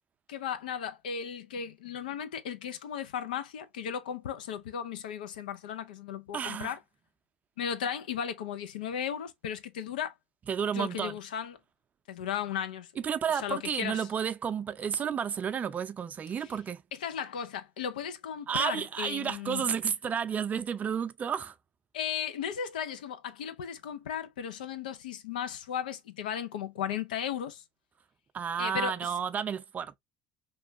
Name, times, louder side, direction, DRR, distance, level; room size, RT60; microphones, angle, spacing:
voice 1, 0.3-6.8 7.6-10.1 10.7-11.6 12.1-12.9 13.3-14.1 16.9-19.7 21.9-27.6 28.6-28.9, left 8 dB, 85° left, 0.4 m, -35 dB
voice 2, 6.3-6.7 10.5-11.2 13.0-16.8 18.5-21.5 28.3-29.9, right 7 dB, 35° right, 0.5 m, -31 dB
3.0 x 2.3 x 2.6 m
hypercardioid pair, 80°, 5 cm